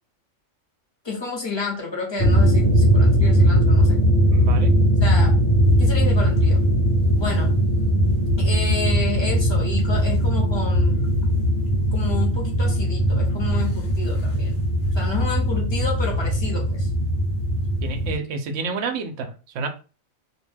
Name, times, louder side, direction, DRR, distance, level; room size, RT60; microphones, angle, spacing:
voice 1, 1.0-4.0 5.0-5.3 5.8-6.6 7.1-7.6 8.4-11.1 11.9-14.7 15.0-16.9, left 3 dB, 25° left, -2 dB, 0.6 m, -30 dB
sound 1, 2.2-18.1, equal, 65° left, 1.1 m, -19 dB
voice 2, 4.3-4.7 17.8-19.7, right 4 dB, 75° right, 6 dB, 0.9 m, -29 dB
2.7 x 2.1 x 3.2 m, 0.34 s
omnidirectional pair, 1.3 m